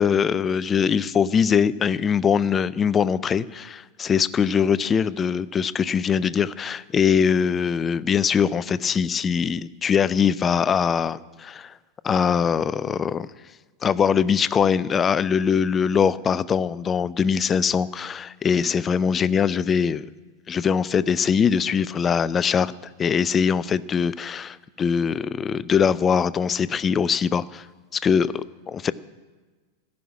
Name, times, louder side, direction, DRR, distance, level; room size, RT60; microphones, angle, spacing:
voice 1, 0.0-11.7 12.0-13.3 13.8-20.1 20.5-22.7 23.0-27.7 27.9-28.9, left 7 dB, 20° left, 18 dB, 0.4 m, -22 dB
14.0 x 6.3 x 9.6 m, 1.3 s
figure-of-eight pair, 90°, 0 cm